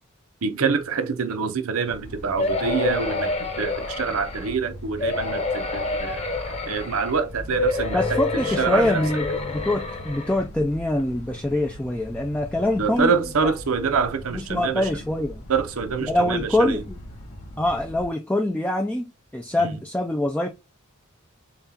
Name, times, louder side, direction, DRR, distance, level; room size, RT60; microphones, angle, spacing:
voice 1, 0.4-6.2 6.7-8.2 8.6-9.0 12.8-14.9 15.5-16.8 19.6-19.7, right 5 dB, 70° right, 0.7 m, -26 dB
sound 1, 1.8-18.1, equal, 75° left, 1.5 m, -39 dB
sound 2, 2.4-4.5 5.0-7.2 7.6-10.4 11.0-11.1 11.4-11.5, left 3 dB, 30° left, 1.0 m, -28 dB
voice 2, 7.9-13.1 13.4-13.5 14.3-15.4 16.1-17.0 17.6-20.5, left 1 dB, 5° left, 0.3 m, -24 dB
7.0 x 2.4 x 2.7 m
head